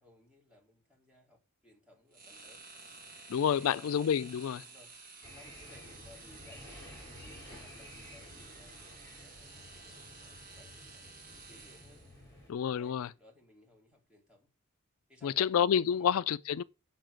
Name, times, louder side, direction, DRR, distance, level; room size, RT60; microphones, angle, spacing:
voice 1, 0.0-2.7 3.4-4.0 4.6-4.9 5.3-11.0 11.3-12.0 12.8-14.5 15.1-16.1, left 2 dB, 5° right, 2.7 m, -60 dB
sound 1, 2.1-12.2, right 4 dB, 40° right, 2.2 m, -52 dB
sound 2, 2.6-4.2, right 2 dB, 25° right, 6.1 m, -67 dB
voice 2, 3.3-4.6 12.5-13.1 15.2-16.6, left 8 dB, 75° left, 0.4 m, -29 dB
sound 3, 5.2-12.5, left 1 dB, 10° left, 4.1 m, -52 dB
7.5 x 5.8 x 6.6 m
head